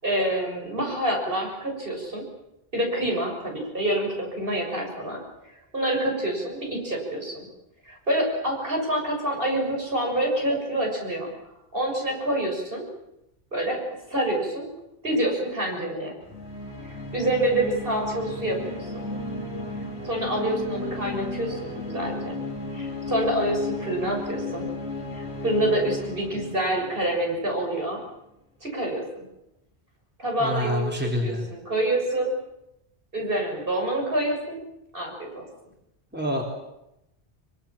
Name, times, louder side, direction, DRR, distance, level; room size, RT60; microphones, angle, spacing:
voice 1, 0.0-2.2 2.7-5.2 5.7-7.5 7.9-11.3 11.7-12.8 13.5-13.8 14.1-14.7 15.0-16.2 16.8-19.1 20.0-22.4 22.7-24.7 25.1-28.0 28.6-29.3 30.2-32.3 33.1-34.6 34.9-35.4, right 1 dB, 55° right, 0 dB, 7.1 m, -27 dB
sound 1, 16.2-27.8, left 2 dB, 70° left, 3.2 m, -34 dB
voice 2, 30.4-31.4 36.1-36.4, left 1 dB, 10° right, 0 dB, 3.9 m, -27 dB
24.5 x 24.0 x 7.3 m, 0.87 s
omnidirectional pair, 1.1 m